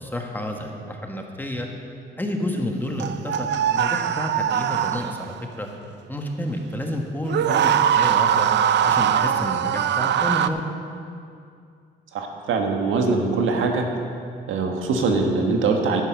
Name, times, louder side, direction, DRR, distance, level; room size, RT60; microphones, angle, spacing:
voice 1, 0.0-1.7 2.2-5.7 6.1-8.5 8.8-10.6, left 1 dB, 10° left, 2 dB, 1.6 m, -30 dB
sound 1, 3.0-5.4 7.2-10.5, right 9 dB, 65° right, 0.6 m, -21 dB
voice 2, 12.1-13.8 14.5-16.0, right 4 dB, 85° right, 3 dB, 1.5 m, -22 dB
10.5 x 9.9 x 6.5 m, 2.4 s
cardioid pair, 90°, 20 cm